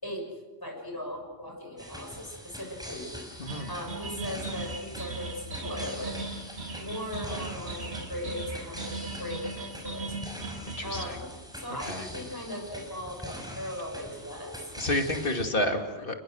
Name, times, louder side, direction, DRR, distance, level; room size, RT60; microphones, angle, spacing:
voice 1, 0.6-3.1 3.7-6.2 6.8-10.2 10.8-11.3 11.5-14.6, left 1 dB, 20° left, 1 dB, 6.6 m, -38 dB
sound 1, 1.8-15.5, equal, 5° right, 5.6 m, -43 dB
sound 2, 3.5-11.1, right 3 dB, 75° right, 2.7 m, -38 dB
voice 2, 10.7-11.2 11.9-12.1 14.8-16.1, left 1 dB, 55° left, 4 dB, 2.7 m, -30 dB
29.5 x 21.0 x 6.5 m, 1.2 s
omnidirectional pair, 1.1 m